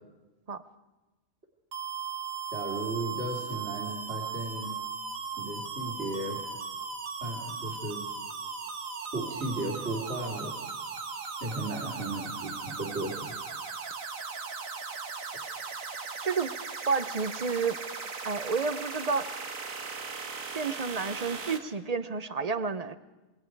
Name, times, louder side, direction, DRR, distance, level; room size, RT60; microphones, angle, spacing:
sound 1, 1.7-21.6, right 5 dB, 80° right, 1.9 m, -38 dB
voice 1, 2.5-4.7 5.4-6.4 7.2-8.0 9.1-10.5 11.4-13.3, right 2 dB, 55° right, -1 dB, 3.3 m, -35 dB
voice 2, 16.9-17.8 18.2-19.3 20.5-22.9, right 5 dB, 35° right, 13 dB, 0.7 m, -30 dB
27.5 x 21.0 x 4.7 m, 1.1 s
omnidirectional pair, 1.4 m